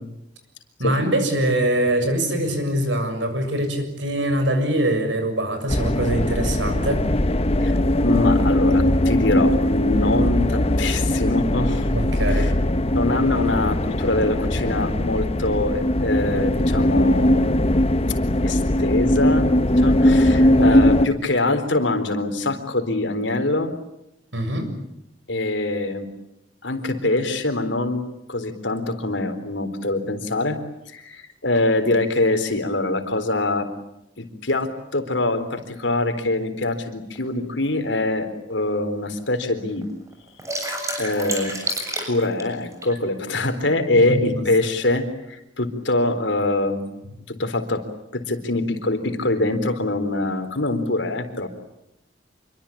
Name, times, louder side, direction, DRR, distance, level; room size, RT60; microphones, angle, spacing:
voice 1, 0.8-7.0 11.9-12.6 20.4-20.8 24.3-24.7 43.9-44.4, right 1 dB, 85° right, 7 dB, 7.1 m, -23 dB
sound 1, 5.7-21.1, left 1 dB, 35° left, 0.9 m, -20 dB
voice 2, 7.6-11.9 12.3-12.5 12.9-17.8 18.4-23.7 25.3-26.1 26.6-28.0 28.3-30.6 30.9-33.7 34.2-39.9 41.0-41.5 42.1-46.8 47.3-47.8 48.1-51.5, left 2 dB, 80° left, 7 dB, 4.0 m, -24 dB
water pour, 37.1-37.2 38.0-38.1 38.5-38.6 38.8-39.4 39.8-42.9, right 1 dB, 15° right, 7.5 m, -29 dB
27.0 x 23.5 x 8.7 m, 0.85 s
head